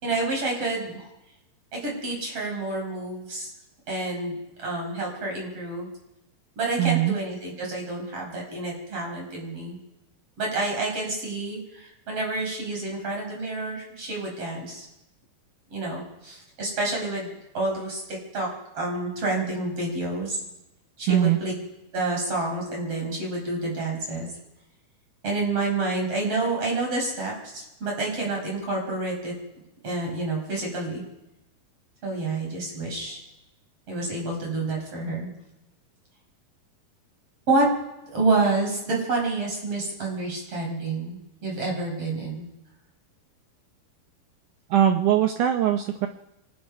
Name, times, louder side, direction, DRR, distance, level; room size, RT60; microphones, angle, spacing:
voice 1, 0.0-1.0 1.7-3.5 3.9-5.9 6.6-9.8 10.4-14.9 15.7-18.5 18.7-20.4 21.0-21.5 21.9-24.3 25.2-29.3 29.8-31.0 32.0-33.2 33.9-35.3 37.5-37.7 38.1-42.5, right 2 dB, 40° right, -1 dB, 6.1 m, -28 dB
voice 2, 6.8-7.1 21.1-21.4 44.7-46.1, right 11 dB, 75° right, 6 dB, 1.9 m, -21 dB
24.0 x 20.0 x 5.5 m, 0.94 s
omnidirectional pair, 4.4 m